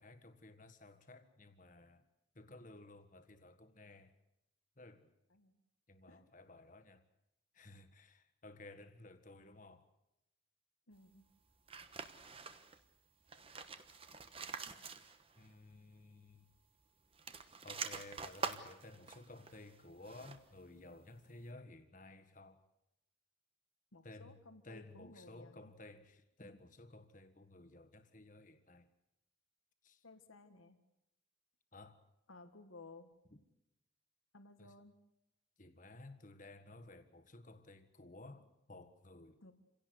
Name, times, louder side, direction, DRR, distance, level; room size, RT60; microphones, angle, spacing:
voice 1, 0.0-2.0 2.3-4.1 4.8-5.1 5.9-7.0 7.5-9.9 15.4-16.5 17.6-22.6 24.0-24.4 24.6-28.9 29.8-30.0 31.7-32.0 34.6-34.7 35.6-39.4, left 2 dB, 40° left, 1.6 m, -55 dB
voice 2, 10.9-11.3 23.9-25.7 30.0-30.8 32.3-33.1 34.3-35.0 39.4-39.5, left 2 dB, 85° left, 1.7 m, -57 dB
sound 1, 11.7-12.8 13.2-15.5 15.7-15.8 17.0-20.6, right 5 dB, 25° right, 1.1 m, -46 dB
27.5 x 17.0 x 8.1 m
head